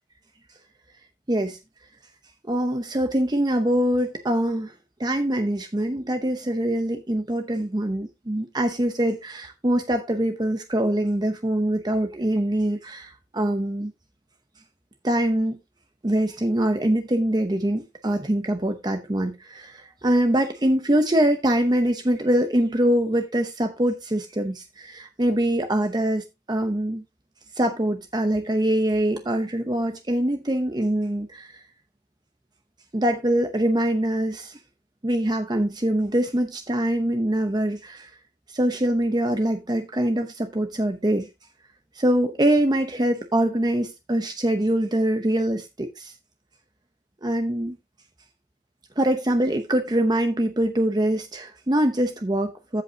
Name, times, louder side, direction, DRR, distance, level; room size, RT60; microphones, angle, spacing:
voice 1, 1.3-1.6 2.5-4.7 5.0-13.9 15.0-15.6 16.0-27.0 27.5-31.6 32.9-34.6 35.0-38.1 38.5-41.3 41.9-46.1 47.2-47.8 49.0-52.8, right 1 dB, 25° right, 0.8 m, -24 dB
15.0 x 5.4 x 2.8 m
head